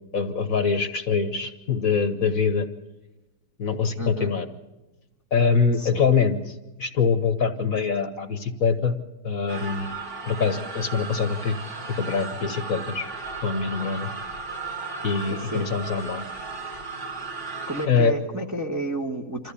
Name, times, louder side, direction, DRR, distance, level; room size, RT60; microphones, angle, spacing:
voice 1, 0.1-2.7 3.6-4.5 5.3-9.0 9.2-9.9 10.2-11.6 11.9-13.1 13.4-14.1 15.0-16.2 17.8-18.1, left 5 dB, 55° left, 9 dB, 1.5 m, -24 dB
voice 2, 4.0-4.3 5.8-6.0 15.4-15.7 17.7-19.5, right 1 dB, 10° right, 0 dB, 1.3 m, -30 dB
sound 1, 9.5-17.9, right 4 dB, 45° right, 2.2 m, -35 dB
26.0 x 14.5 x 8.4 m, 1.1 s
omnidirectional pair, 1.8 m